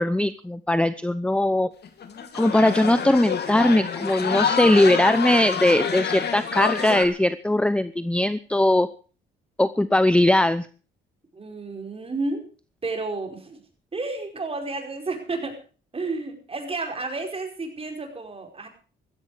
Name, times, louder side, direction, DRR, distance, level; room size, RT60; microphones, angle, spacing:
voice 1, 0.0-1.7 2.3-8.9 9.6-10.7, left 1 dB, 5° left, 14 dB, 0.7 m, -20 dB
sound 1, 1.8-7.1, left 7 dB, 55° left, 2.7 m, -27 dB
voice 2, 11.3-12.5 12.8-13.6 13.9-15.6 15.9-18.7, right 3 dB, 30° right, 4 dB, 5.0 m, -31 dB
15.5 x 14.5 x 5.0 m, 0.38 s
cardioid pair, 90°, 20 cm